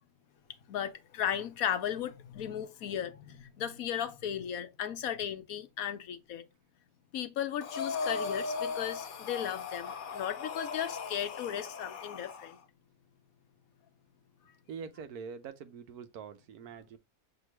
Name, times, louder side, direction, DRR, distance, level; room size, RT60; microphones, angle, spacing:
voice 1, 0.7-6.4 7.1-12.6, left 9 dB, 75° left, 1.2 m, -36 dB
Breathing, 7.6-12.5, left 5 dB, 55° left, 0.5 m, -37 dB
voice 2, 14.7-17.0, right 6 dB, 85° right, 1.3 m, -44 dB
6.0 x 3.0 x 3.0 m
omnidirectional pair, 1.6 m